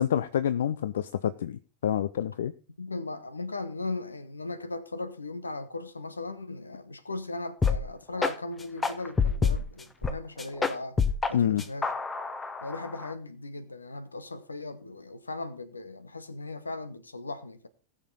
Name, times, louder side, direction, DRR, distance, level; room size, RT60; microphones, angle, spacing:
voice 1, 0.0-2.5 11.3-11.6, left 9 dB, 60° left, 0.5 m, -27 dB
voice 2, 2.8-11.9 12.6-17.7, left 2 dB, 80° left, 1.1 m, -37 dB
sound 1, 7.6-7.8 8.2-8.3 8.8-10.1 10.4-11.3 11.6-13.1, left 5 dB, 15° left, 1.0 m, -27 dB
19.0 x 6.6 x 4.1 m
figure-of-eight pair, 90°, 0 cm